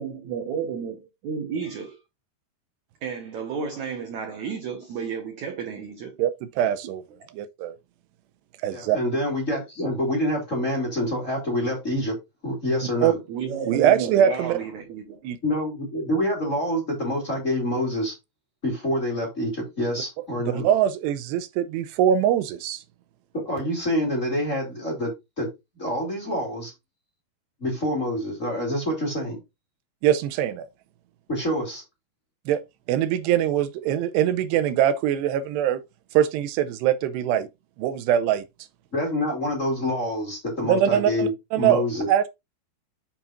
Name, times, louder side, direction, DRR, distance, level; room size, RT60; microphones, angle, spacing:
voice 1, 0.0-2.0 3.0-6.2 13.3-15.2, right 6 dB, 65° right, 1.9 m, -32 dB
voice 2, 6.6-7.0 7.3-7.8 8.6-9.0 13.0-13.1 13.7-14.5 15.2-15.4 20.5-22.8 30.0-30.7 32.5-32.6 32.9-35.8 36.1-37.5 37.8-38.4 40.7-42.3, right 10 dB, 85° right, 2.8 m, -22 dB
voice 3, 8.7-12.1 12.4-13.2 15.4-18.1 18.6-20.7 23.3-25.5 25.8-26.7 27.6-29.4 31.3-31.8 38.9-42.1, left 1 dB, 20° left, 3.2 m, -27 dB
8.4 x 7.2 x 2.5 m
omnidirectional pair, 5.0 m